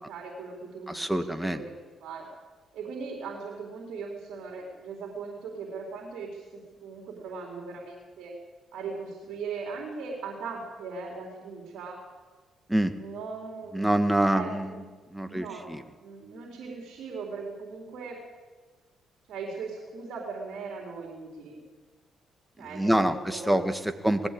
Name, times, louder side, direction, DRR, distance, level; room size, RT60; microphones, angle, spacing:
voice 1, 0.0-1.1 1.4-1.7 2.0-2.3 2.7-8.3 8.7-12.0 12.9-13.9 14.3-18.2 19.3-21.6 22.6-23.8, right 4 dB, 75° right, -1 dB, 4.5 m, -39 dB
voice 2, 0.9-1.6 12.7-12.9 13.7-14.7 15.1-15.8 22.6-24.3, right 1 dB, 5° right, 8 dB, 1.6 m, -26 dB
20.5 x 15.0 x 8.7 m, 1.4 s
cardioid pair, 90°, 0 cm